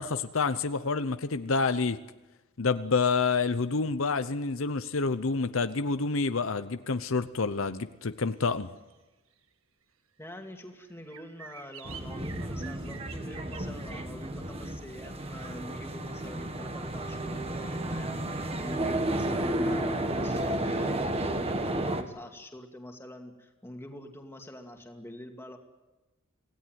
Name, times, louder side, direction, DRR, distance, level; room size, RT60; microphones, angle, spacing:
voice 1, 0.0-2.0 2.6-8.7, left 4 dB, 70° left, 11 dB, 0.8 m, -28 dB
sound 1, 8.9-9.0 10.4-10.5 10.8-13.7, right 8 dB, 70° right, 1.6 m, -48 dB
voice 2, 10.2-25.6, left 1 dB, 10° left, 3 dB, 2.4 m, -45 dB
sound 2, 11.8-22.0, right 1 dB, 30° right, 1.6 m, -32 dB
26.0 x 17.0 x 9.4 m, 1.1 s
head